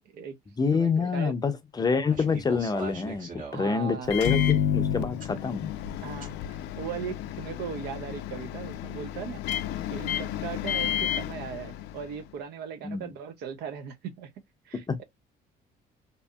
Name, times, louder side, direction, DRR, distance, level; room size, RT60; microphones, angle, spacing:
voice 1, 0.1-0.4 0.7-1.4 3.5-4.1 6.0-9.4 9.9-14.3 14.7-15.0, right 7 dB, 70° right, 0.6 m, -38 dB
voice 2, 0.6-5.7 12.8-13.1 14.7-15.0, left 5 dB, 25° left, 0.5 m, -27 dB
sound 1, 2.1-3.6 4.2-4.3 5.2-5.3 6.2-6.3, right 3 dB, 50° right, 1.2 m, -40 dB
Microwave oven, 4.0-12.2, left 10 dB, 85° left, 0.4 m, -31 dB
2.7 x 2.6 x 2.2 m
cardioid pair, 110°, 17 cm